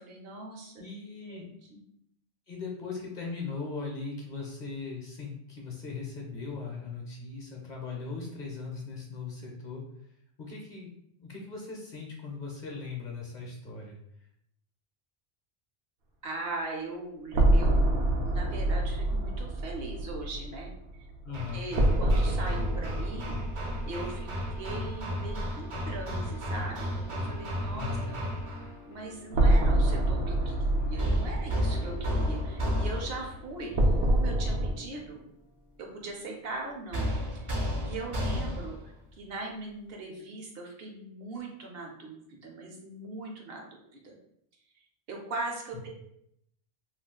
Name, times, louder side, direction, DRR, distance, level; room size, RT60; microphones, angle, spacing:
voice 1, 0.0-0.8 1.3-1.8 16.2-21.0 21.5-23.4 23.9-24.3 24.6-28.1 28.9-35.2 35.8-37.6 37.8-38.8 39.1-44.1 45.1-45.9, right 2 dB, 70° right, 1 dB, 0.8 m, -40 dB
voice 2, 0.8-1.5 2.5-9.8 10.4-10.9 11.2-14.0 21.2-21.7 27.7-28.1, left 4 dB, 50° left, -2 dB, 0.7 m, -39 dB
sound 1, 17.3-25.1 25.4-25.5 29.3-34.7, right 1 dB, 85° right, 0.9 m, -27 dB
Hammer, 21.3-28.8 31.0-33.4 36.9-38.9, equal, 45° right, 0.4 m, -33 dB
sound 2, 27.0-37.0, left 3 dB, 75° left, 0.8 m, -50 dB
2.4 x 2.3 x 3.6 m, 0.75 s
omnidirectional pair, 1.1 m